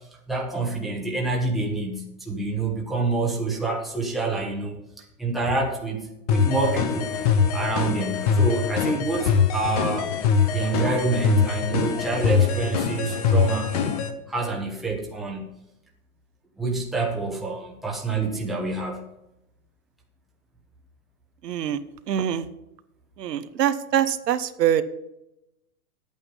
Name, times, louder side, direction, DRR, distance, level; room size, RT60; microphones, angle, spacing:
voice 1, 0.3-4.8 5.2-7.1 7.5-10.1 10.5-14.0 14.3-15.5 16.6-19.0, right 3 dB, ahead, -2 dB, 1.1 m, -27 dB
sound 1, 6.3-14.1, left 6 dB, 25° left, 0.7 m, -23 dB
voice 2, 21.4-21.8 22.1-22.5 23.2-24.8, right 10 dB, 85° right, 12 dB, 1.1 m, -24 dB
11.5 x 8.8 x 5.4 m, 0.89 s
hypercardioid pair, 165°, 48 cm